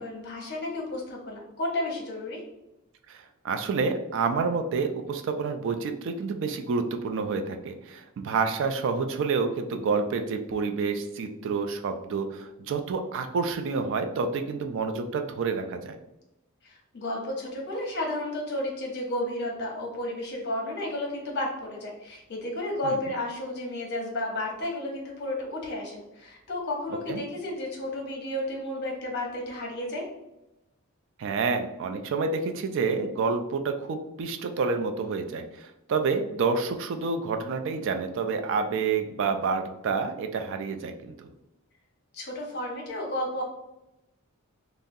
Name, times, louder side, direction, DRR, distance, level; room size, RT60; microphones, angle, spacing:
voice 1, 0.0-2.4 16.6-30.0 42.1-43.4, left 1 dB, 50° left, -1 dB, 0.8 m, -32 dB
voice 2, 3.1-16.0 22.8-23.0 27.1-27.2 31.2-41.3, right 4 dB, 55° right, 7 dB, 0.3 m, -28 dB
3.6 x 2.0 x 2.6 m, 0.91 s
head